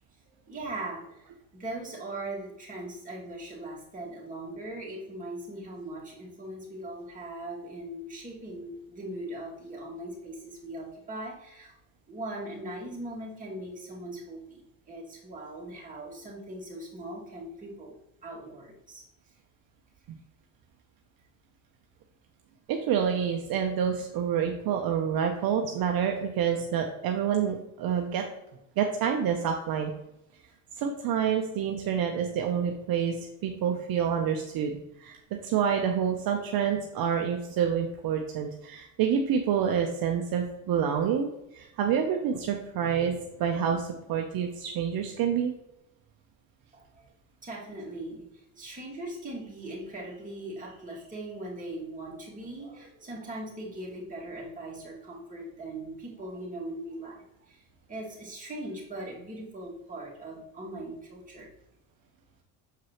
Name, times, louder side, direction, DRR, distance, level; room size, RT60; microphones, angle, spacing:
voice 1, 0.2-11.7 12.1-17.9 18.2-19.0 46.7-47.1 47.4-61.5, right 1 dB, 20° right, -4 dB, 2.4 m, -40 dB
voice 2, 22.7-28.2 28.8-29.9 30.7-34.7 35.0-35.2 35.4-45.5, right 8 dB, 55° right, 3 dB, 0.9 m, -28 dB
6.8 x 4.7 x 3.1 m, 0.88 s
supercardioid pair, 95°, 42 cm